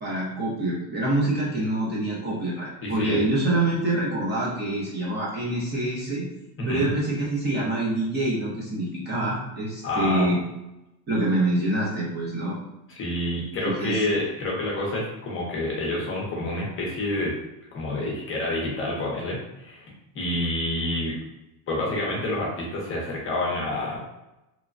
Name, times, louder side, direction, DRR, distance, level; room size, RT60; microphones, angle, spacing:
voice 1, 0.0-6.2 6.6-10.4 11.1-12.6 13.6-14.0, right 1 dB, 25° right, -6 dB, 0.6 m, -26 dB
voice 2, 2.8-3.2 6.6-6.9 9.8-10.3 13.0-17.4 17.7-19.9 20.1-21.1 21.7-24.0, left 1 dB, 30° left, -3 dB, 0.6 m, -28 dB
3.0 x 2.2 x 2.4 m, 0.93 s
cardioid pair, 165°, 42 cm